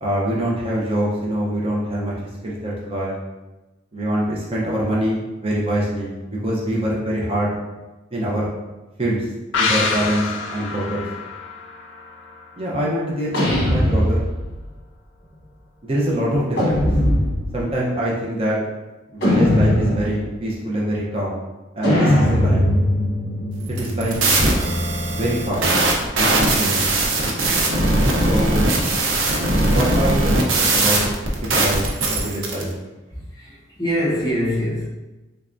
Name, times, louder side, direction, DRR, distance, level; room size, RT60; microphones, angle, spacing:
voice 1, 0.0-2.1 2.4-3.2 3.9-7.6 8.1-8.5 9.0-9.3 9.6-11.1 12.6-14.2 15.8-16.9 17.5-18.6 19.1-21.4 21.7-22.6 23.7-24.2 25.1-25.7 26.1-26.9 28.3-28.7 29.6-31.0 31.5-32.7, right 1 dB, 30° right, -5 dB, 0.6 m, -24 dB
sound 1, 9.5-13.0 13.3-13.4, left 4 dB, 75° left, 0.4 m, -26 dB
sound 2, 13.3-14.6 16.6-17.6 19.2-20.3 21.8-24.5, left 1 dB, 55° left, 1.0 m, -20 dB
sound 3, 23.7-32.6, right 2 dB, 85° right, 0.6 m, -19 dB
voice 2, 33.1-34.9, equal, 20° left, -7 dB, 0.8 m, -24 dB
3.3 x 3.3 x 2.5 m, 1.1 s
head